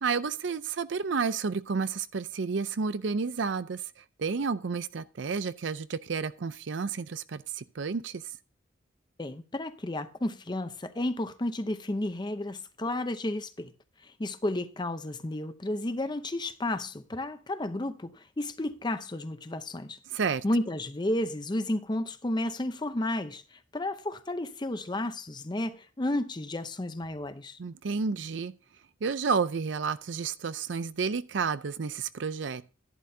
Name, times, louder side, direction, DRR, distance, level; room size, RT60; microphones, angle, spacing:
voice 1, 0.0-3.8 4.2-8.2 20.1-20.4 27.6-28.5 29.0-32.6, right 5 dB, 70° right, 0.5 m, -31 dB
voice 2, 9.2-13.7 14.0-20.0 20.4-27.6, left 1 dB, 25° left, 0.7 m, -32 dB
11.0 x 10.5 x 2.7 m
head